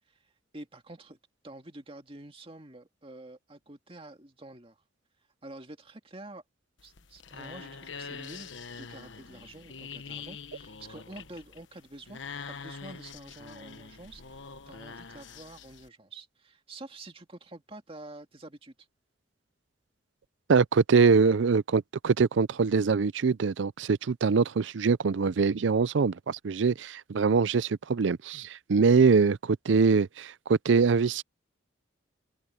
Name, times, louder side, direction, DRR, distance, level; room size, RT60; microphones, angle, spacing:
voice 1, 0.5-1.2 1.4-4.8 5.4-6.4 6.8-12.2 12.5-18.9, right 2 dB, 30° right, 2.1 m, -47 dB
sound 1, 6.8-15.9, left 5 dB, 80° left, 1.2 m, -44 dB
voice 2, 20.5-31.2, right 5 dB, 80° right, 0.5 m, -23 dB
head